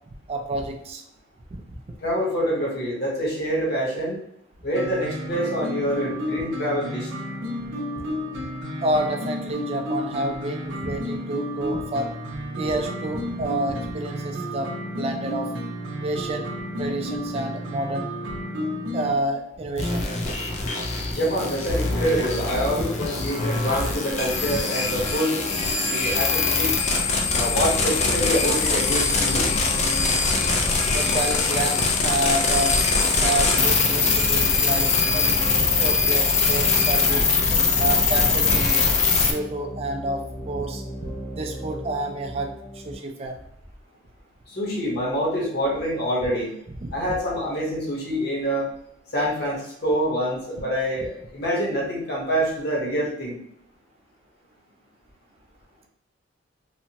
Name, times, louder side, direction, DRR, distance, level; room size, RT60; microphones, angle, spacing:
voice 1, 0.1-1.0 1.5-2.0 8.8-12.1 12.6-15.5 16.0-16.5 16.8-18.4 18.9-20.2 22.8-22.9 24.5-24.6 30.5-32.8 33.2-35.3 35.8-37.3 37.6-38.9 39.3-43.4 46.8-47.0, right 1 dB, 30° right, 3 dB, 0.4 m, -29 dB
voice 2, 2.0-4.2 4.6-7.1 21.1-25.4 25.8-26.7 27.3-29.5 44.5-46.5 46.9-48.7 49.1-53.4, equal, 55° left, -3 dB, 1.0 m, -26 dB
sound 1, 4.7-19.1, equal, 80° right, 0.5 m, -31 dB
sound 2, 19.8-39.3, left 4 dB, 35° left, 0.4 m, -22 dB
sound 3, 25.3-43.0, equal, 80° left, 1.0 m, -37 dB
3.2 x 2.0 x 2.8 m, 0.72 s
head